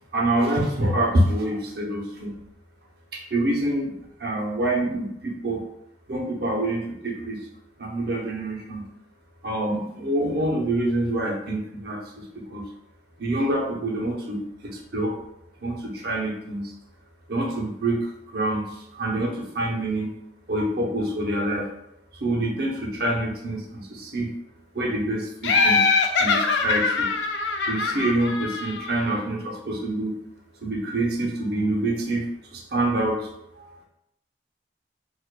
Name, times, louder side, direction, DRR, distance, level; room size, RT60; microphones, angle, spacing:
voice 1, 0.1-2.3 3.1-3.9 4.2-5.6 6.1-7.4 7.8-8.8 9.4-12.6 13.2-15.1 15.6-16.7 17.3-20.1 20.5-21.7 22.2-24.3 24.7-25.8 26.2-27.1 27.7-30.1 30.6-32.2 32.5-33.3 33.5-33.7, right 1 dB, 60° right, -1 dB, 0.8 m, -26 dB
Laughter, 25.4-29.1, left 4 dB, 85° left, 0.4 m, -23 dB
4.7 x 2.5 x 2.2 m, 0.79 s
head